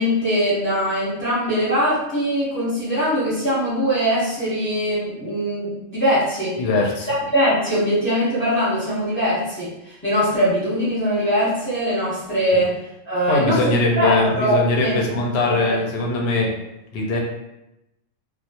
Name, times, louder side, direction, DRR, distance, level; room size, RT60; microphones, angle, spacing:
voice 1, 0.0-6.6 7.1-12.8 13.1-16.5, equal, 10° left, -10 dB, 0.8 m, -22 dB
voice 2, 6.6-7.1 12.5-12.6 13.3-16.5 16.9-17.2, left 2 dB, 60° left, 0 dB, 0.7 m, -21 dB
2.3 x 2.0 x 2.8 m, 0.90 s
omnidirectional pair, 1.4 m